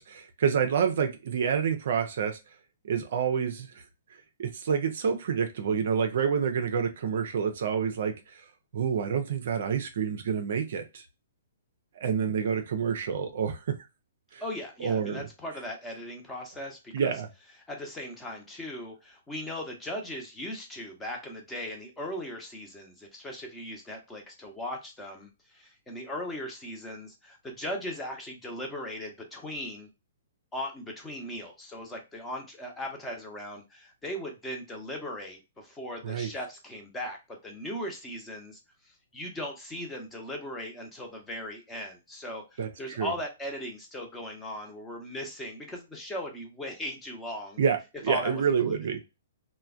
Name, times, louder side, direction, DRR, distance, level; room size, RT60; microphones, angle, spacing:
voice 1, 0.0-2.4 2.8-3.8 4.4-8.4 8.7-11.0 12.0-13.6 14.3-14.4 14.8-15.3 16.9-17.3 36.0-36.3 42.6-42.7 43.0-43.1 47.6-47.8 48.0-49.0, right 7 dB, 55° right, 0.5 m, -28 dB
voice 2, 14.4-17.2 17.7-29.9 30.5-47.6 48.1-48.8, left 1 dB, 10° left, 0.8 m, -38 dB
3.2 x 2.2 x 2.4 m
figure-of-eight pair, 115°, 0 cm